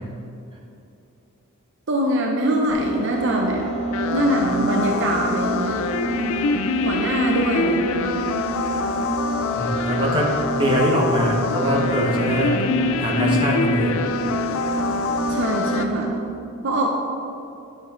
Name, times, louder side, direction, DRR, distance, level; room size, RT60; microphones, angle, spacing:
voice 1, 1.9-3.7 4.1-5.8 6.8-8.2 15.3-16.1 16.6-16.9, right 1 dB, 55° right, 1 dB, 0.7 m, -23 dB
sound 1, 2.7-16.2, right 2 dB, 25° left, 1.0 m, -28 dB
sound 2, 3.9-15.8, left 5 dB, 65° left, 0.4 m, -26 dB
voice 2, 9.5-12.6 13.0-14.0, equal, 20° right, -2 dB, 1.3 m, -22 dB
11.0 x 7.0 x 3.8 m, 2.7 s
head